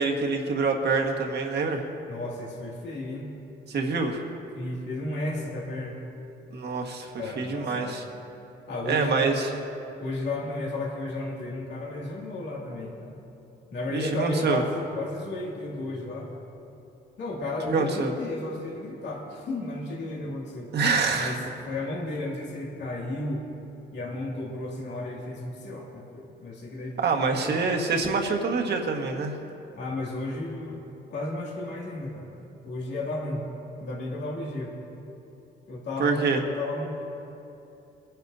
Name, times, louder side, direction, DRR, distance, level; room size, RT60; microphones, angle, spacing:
voice 1, 0.0-1.8 3.7-4.2 6.5-8.0 8.8-9.5 13.9-14.6 17.7-18.1 20.7-21.4 27.0-29.4 36.0-36.4, right 4 dB, 55° right, 2 dB, 1.6 m, -26 dB
voice 2, 2.1-3.3 4.5-6.0 7.2-8.0 8.7-9.3 10.0-13.3 13.7-16.3 17.2-20.7 21.1-23.5 23.9-27.6 29.8-30.8 31.1-32.3 32.6-33.5 33.8-34.7 35.7-36.9, left 2 dB, 60° left, -3 dB, 2.4 m, -33 dB
22.5 x 10.5 x 2.7 m, 2.9 s
cardioid pair, 90°, 20 cm